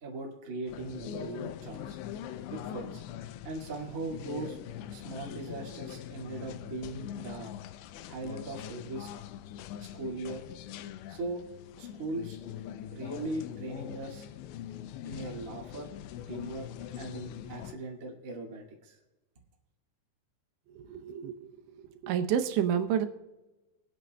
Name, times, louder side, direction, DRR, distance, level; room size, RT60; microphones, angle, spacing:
voice 1, 0.0-2.0 2.5-3.0 3.4-4.6 4.9-7.5 8.1-9.1 9.8-10.4 11.1-11.4 11.8-12.4 12.9-14.2 15.0-15.9 16.3-16.7 16.9-19.0, right 2 dB, 60° right, -2 dB, 0.8 m, -39 dB
sound 1, 0.7-17.7, left 10 dB, 80° left, 2.7 m, -42 dB
voice 2, 20.7-21.6 22.0-23.1, right 9 dB, 80° right, 7 dB, 3.0 m, -29 dB
22.5 x 8.8 x 2.2 m, 1.1 s
omnidirectional pair, 5.2 m